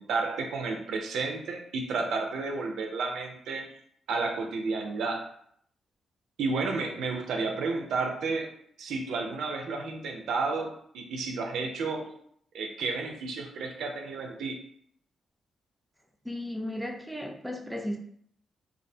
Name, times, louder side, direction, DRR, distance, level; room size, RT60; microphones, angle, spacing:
voice 1, 0.0-3.7 4.1-5.3 6.4-8.5 8.8-12.1 12.5-14.6, right 4 dB, 80° right, 2 dB, 0.4 m, -31 dB
voice 2, 16.2-18.0, left 1 dB, ahead, 1 dB, 0.4 m, -35 dB
2.4 x 2.1 x 2.6 m, 0.66 s
cardioid pair, 80°, 0 cm